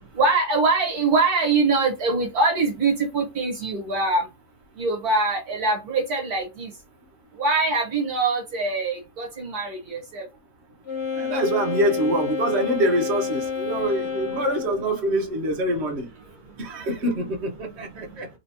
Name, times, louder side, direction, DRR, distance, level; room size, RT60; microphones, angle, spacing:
voice 1, 0.2-4.3 4.8-6.7 7.4-10.2, right 3 dB, 65° right, 1.6 m, -23 dB
Wind instrument woodwind instrument, 10.8-14.9, left 6 dB, 85° left, 2.0 m, -29 dB
voice 2, 11.1-16.1 16.6-18.3, right 1 dB, 45° right, 1.3 m, -25 dB
4.0 x 3.0 x 2.7 m
omnidirectional pair, 1.8 m